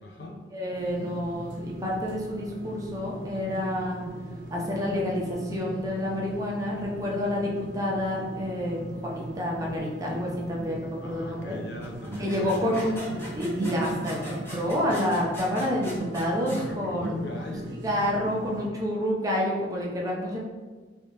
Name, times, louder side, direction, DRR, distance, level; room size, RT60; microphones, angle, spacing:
voice 1, 0.0-0.4 11.0-13.1 14.0-14.5 16.7-17.8, left 2 dB, 70° left, 1 dB, 0.5 m, -40 dB
voice 2, 0.5-4.0 4.5-11.6 12.2-17.1 17.8-20.4, left 1 dB, 20° right, -3 dB, 0.6 m, -29 dB
sound 1, 0.7-18.7, right 1 dB, 80° right, 0.5 m, -39 dB
sound 2, 11.8-16.7, equal, 15° left, 0.8 m, -41 dB
3.2 x 2.8 x 2.9 m, 1.3 s
head